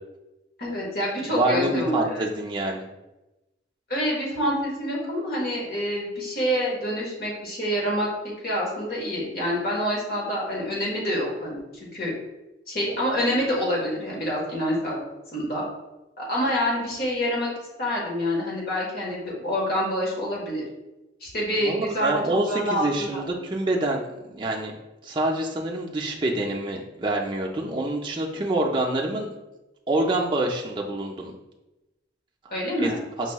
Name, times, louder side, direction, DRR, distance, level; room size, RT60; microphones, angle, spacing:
voice 1, 0.6-2.2 3.9-12.1 12.7-15.0 15.3-15.6 16.2-17.5 17.8-20.6 21.2-23.2 32.5-33.0, equal, 55° left, -4 dB, 1.3 m, -27 dB
voice 2, 1.3-2.8 21.6-24.7 25.0-29.3 29.9-31.3 32.5-32.6 32.8-33.0, right 2 dB, 25° right, -1 dB, 0.4 m, -26 dB
5.2 x 3.0 x 2.3 m, 0.99 s
head